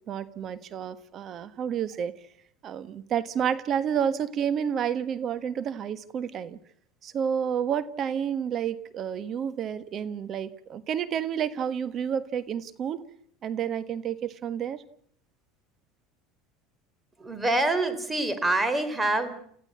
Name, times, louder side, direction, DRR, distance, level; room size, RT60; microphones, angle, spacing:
voice 1, 0.1-2.2 2.6-6.6 7.0-13.1 13.4-14.8, right 8 dB, 45° right, 14 dB, 1.4 m, -30 dB
voice 2, 17.2-19.3, right 2 dB, 15° right, 11 dB, 3.6 m, -26 dB
29.0 x 15.0 x 8.5 m, 0.67 s
supercardioid pair, 105°, 0 cm